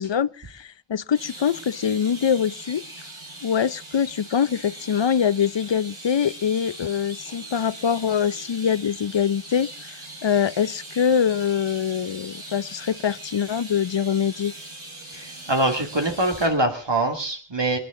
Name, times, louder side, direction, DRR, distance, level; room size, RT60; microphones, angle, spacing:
voice 1, 0.0-2.8 3.4-9.7 10.2-14.5, left 7 dB, 60° left, 0.7 m, -24 dB
sound 1, 1.1-16.5, right 1 dB, 75° right, 5.4 m, -41 dB
voice 2, 15.1-17.8, right 1 dB, 60° right, 2.4 m, -24 dB
28.0 x 10.0 x 3.7 m
wide cardioid pair, 40°, 49 cm